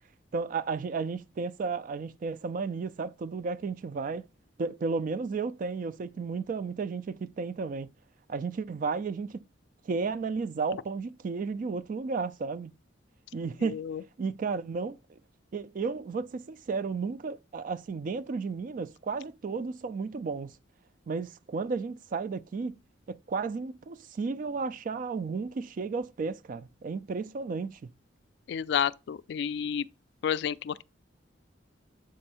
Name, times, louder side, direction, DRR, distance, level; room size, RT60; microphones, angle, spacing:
voice 1, 0.3-4.3 4.6-7.9 8.3-9.4 9.9-12.7 13.3-13.8 14.2-15.2 15.5-20.5 21.1-22.7 23.1-27.9, right 4 dB, 45° right, 0.3 m, -33 dB
voice 2, 13.6-14.0 28.5-29.9 30.2-30.8, left 8 dB, 65° left, 0.3 m, -30 dB
7.5 x 2.6 x 5.5 m
head